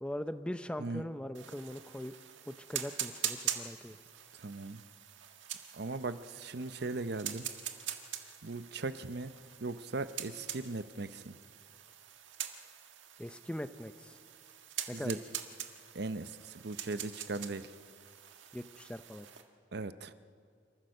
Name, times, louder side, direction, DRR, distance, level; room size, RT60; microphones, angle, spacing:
voice 1, 0.0-2.1 2.5-4.0 13.2-14.2 14.9-15.2 18.5-19.3, equal, 5° left, 11 dB, 0.5 m, -41 dB
sound 1, 1.3-19.4, right 10 dB, 90° right, 1.6 m, -44 dB
voice 2, 4.4-4.8 5.8-7.5 8.4-9.3 9.6-11.4 14.9-15.2 15.9-17.7 19.7-20.1, right 3 dB, 60° right, 12 dB, 0.7 m, -38 dB
28.5 x 14.5 x 6.5 m, 2.2 s
head